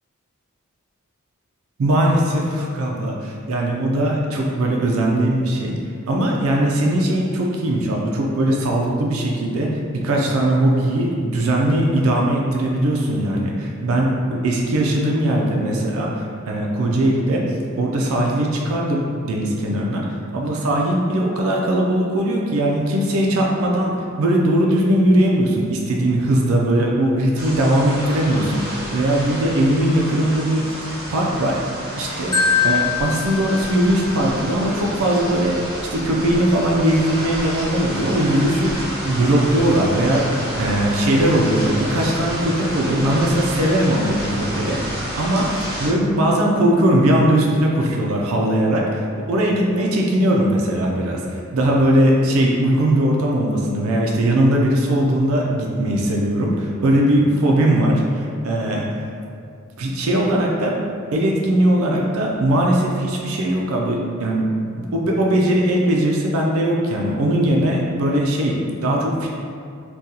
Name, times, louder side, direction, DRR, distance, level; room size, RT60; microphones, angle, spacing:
voice 1, 1.8-5.8 6.1-20.1 20.3-30.7 31.1-32.4 32.6-59.0 59.8-60.8 61.1-64.5 64.9-69.3, right 1 dB, 80° right, -1 dB, 0.4 m, -20 dB
sound 1, 27.3-45.9, equal, 45° right, 0.7 m, -30 dB
Marimba xylophone, 32.3-34.4, left 6 dB, 20° left, 0.3 m, -22 dB
3.7 x 2.3 x 2.8 m, 2.4 s
head